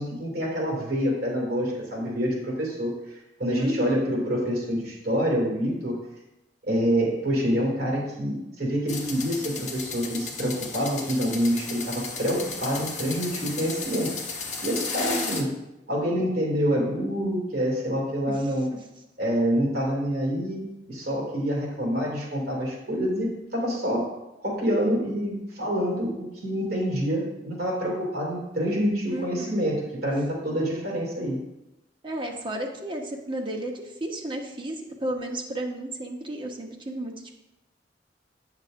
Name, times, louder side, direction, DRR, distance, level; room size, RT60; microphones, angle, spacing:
voice 1, 0.0-2.9 3.4-6.0 6.7-14.2 14.6-15.5 15.9-18.7 19.2-24.1 24.4-31.4, equal, 60° right, -4 dB, 2.5 m, -27 dB
voice 2, 3.6-4.0 15.1-15.4 18.3-18.4 18.7-18.8 29.1-29.6 32.0-37.1, right 1 dB, 30° right, 1 dB, 1.0 m, -33 dB
sound 1, 8.9-15.4, left 4 dB, 45° left, 1.0 m, -34 dB
9.0 x 6.6 x 2.5 m, 0.94 s
head